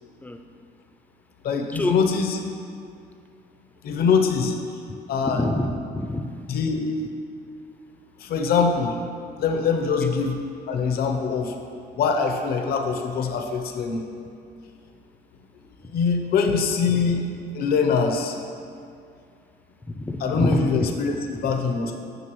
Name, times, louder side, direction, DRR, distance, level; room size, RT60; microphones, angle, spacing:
voice 1, 1.4-2.4 3.8-4.5 5.1-5.4 6.5-6.9 8.2-9.0 9.4-10.4 10.7-11.5 12.0-14.0 15.8-17.3 17.5-18.4 20.2-21.1 21.4-22.0, left 5 dB, 65° left, 4 dB, 0.8 m, -23 dB
voice 2, 5.2-6.4 10.0-10.1 19.9-21.1 21.3-21.5, left 1 dB, 10° left, 6 dB, 0.5 m, -27 dB
9.2 x 5.5 x 3.1 m, 2.4 s
cardioid pair, 110°, 17 cm